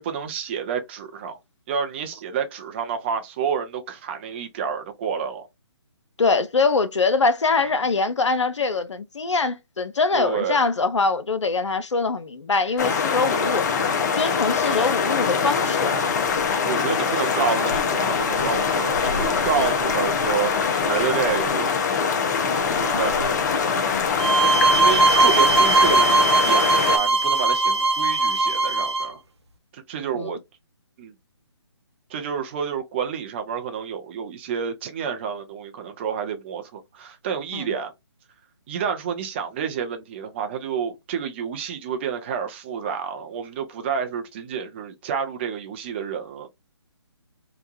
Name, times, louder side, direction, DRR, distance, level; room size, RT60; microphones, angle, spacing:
voice 1, 0.0-1.4 1.7-5.5 10.1-10.7 13.3-13.6 16.6-21.8 22.7-23.4 24.7-29.2 29.7-30.4 31.0-31.1 32.1-37.9 38.7-46.5, right 7 dB, 25° right, 0.5 m, -29 dB
voice 2, 6.2-13.6 14.2-15.9 23.9-24.1 30.1-30.3 37.5-37.6, left 4 dB, 90° left, 0.5 m, -23 dB
sound 1, 12.8-27.0, left 5 dB, 40° left, 0.6 m, -23 dB
sound 2, 24.2-29.1, right 3 dB, 65° right, 0.7 m, -19 dB
2.9 x 2.2 x 2.4 m
figure-of-eight pair, 145°, 15 cm